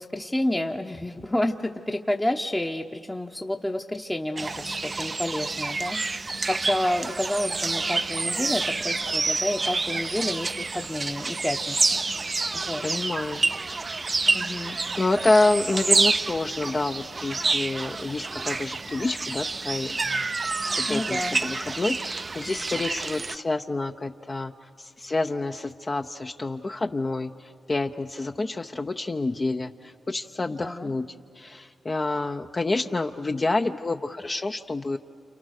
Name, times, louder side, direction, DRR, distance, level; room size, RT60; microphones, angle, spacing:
voice 1, 0.0-6.0 6.5-12.0 12.5-12.8 14.3-14.8 20.9-21.4 30.6-30.9, left 1 dB, 10° left, 3 dB, 0.9 m, -29 dB
sound 1, 4.4-23.4, right 3 dB, 40° right, 0.6 m, -28 dB
voice 2, 12.8-13.4 15.0-20.3 20.7-31.1 31.3-35.0, left 2 dB, 35° left, 4 dB, 0.7 m, -28 dB
29.0 x 29.0 x 6.6 m, 2.2 s
cardioid pair, 65°, 0 cm